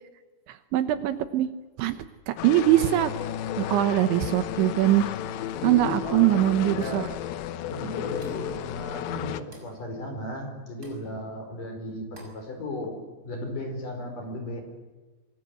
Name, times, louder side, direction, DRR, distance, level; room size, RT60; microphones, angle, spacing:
voice 1, 0.5-1.5 1.8-3.1 3.6-5.1 5.6-7.1, right 13 dB, 75° right, 10 dB, 3.2 m, -22 dB
sound 1, 2.4-9.4, left 10 dB, 75° left, 2.9 m, -33 dB
voice 2, 5.5-7.1 7.7-13.0 13.2-14.6, left 1 dB, 45° left, 4 dB, 6.2 m, -35 dB
sound 2, 6.8-7.2 8.2-8.6 9.5-9.8 10.8-11.1 12.1-12.5, right 1 dB, 15° right, 6.1 m, -50 dB
25.5 x 23.0 x 7.8 m, 1.2 s
omnidirectional pair, 5.6 m